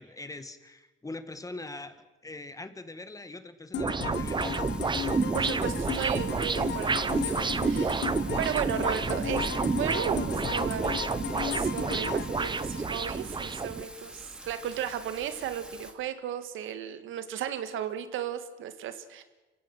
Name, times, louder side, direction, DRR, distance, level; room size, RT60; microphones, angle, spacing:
voice 1, 0.0-4.6, left 2 dB, 15° left, 10 dB, 1.9 m, -42 dB
sound 1, 3.7-13.4, left 11 dB, 65° left, 1.1 m, -36 dB
sound 2, 3.8-13.8, right 4 dB, 25° right, 0.7 m, -29 dB
Thunder / Rain, 4.1-15.9, right 1 dB, 5° right, 2.8 m, -46 dB
voice 2, 5.3-19.2, right 9 dB, 85° right, 10 dB, 1.8 m, -35 dB
28.0 x 16.0 x 6.3 m, 1.1 s
cardioid pair, 90°, 20 cm